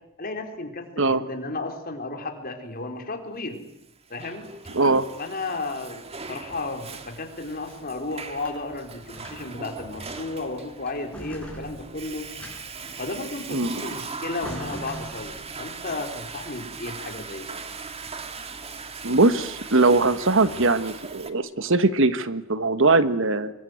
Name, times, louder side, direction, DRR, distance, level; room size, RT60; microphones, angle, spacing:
voice 1, 0.2-3.6 4.1-4.5 5.2-6.0 6.3-12.3 13.0-17.6, left 2 dB, 45° left, 4 dB, 4.3 m, -33 dB
Water / Toilet flush, 3.8-21.3, right 4 dB, 30° right, 1.9 m, -39 dB
voice 2, 4.7-5.1 13.5-13.7 19.0-23.5, right 3 dB, 65° right, 12 dB, 1.5 m, -21 dB
sound 1, 7.5-8.6 9.0-9.6 10.0-10.6 10.9-13.0 14.0-14.1 14.4-15.6, equal, 5° left, 6.8 m, -41 dB
25.5 x 23.5 x 9.5 m, 0.81 s
head